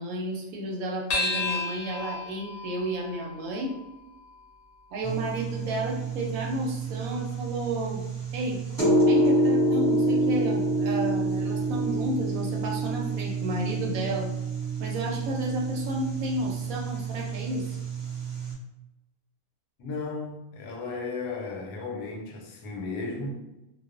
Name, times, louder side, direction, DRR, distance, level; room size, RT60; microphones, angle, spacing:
voice 1, 0.0-3.7 4.9-8.1 8.3-8.6 9.1-14.3 14.8-17.8, right 1 dB, 70° right, 0 dB, 0.9 m, -32 dB
sound 1, 1.1-5.9, left 3 dB, 55° left, 0.8 m, -34 dB
sound 2, 5.0-18.5, right 2 dB, 15° right, 0.9 m, -28 dB
voice 2, 19.8-23.4, left 3 dB, 85° left, 1 dB, 1.1 m, -35 dB
2.4 x 2.3 x 2.3 m, 0.95 s
omnidirectional pair, 1.6 m